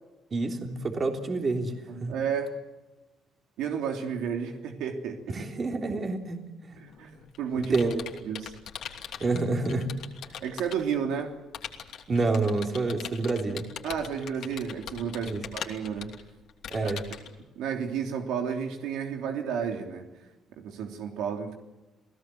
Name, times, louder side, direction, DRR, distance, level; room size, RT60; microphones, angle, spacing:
voice 1, 0.3-2.1 5.3-6.8 7.5-8.3 9.2-9.9 10.2-10.3 12.1-13.6 15.2-15.4 16.7-17.0, right 3 dB, 35° right, 3.5 m, -28 dB
voice 2, 1.9-2.6 3.6-5.5 6.8-7.7 8.2-8.6 10.4-11.4 13.8-16.2 16.8-16.9 17.5-20.1 20.5-21.5, right 7 dB, 85° right, 3.3 m, -32 dB
Computer keyboard, 6.9-11.0 11.5-17.3, left 8 dB, 65° left, 2.9 m, -41 dB
29.0 x 17.5 x 7.9 m
cardioid pair, 120°, 0 cm